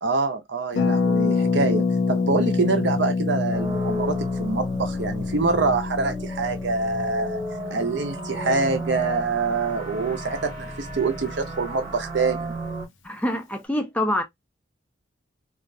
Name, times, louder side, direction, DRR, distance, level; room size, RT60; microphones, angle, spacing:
voice 1, 0.0-7.4 7.7-12.6, right 3 dB, 60° right, 0.6 m, -25 dB
Harp, 0.7-10.4 10.6-10.7 10.9-11.2, left 4 dB, 80° left, 0.5 m, -27 dB
sound 1, 3.5-12.9, right 1 dB, 20° right, 1.0 m, -35 dB
voice 2, 13.0-14.2, left 1 dB, 5° left, 0.3 m, -25 dB
2.5 x 2.2 x 2.5 m
head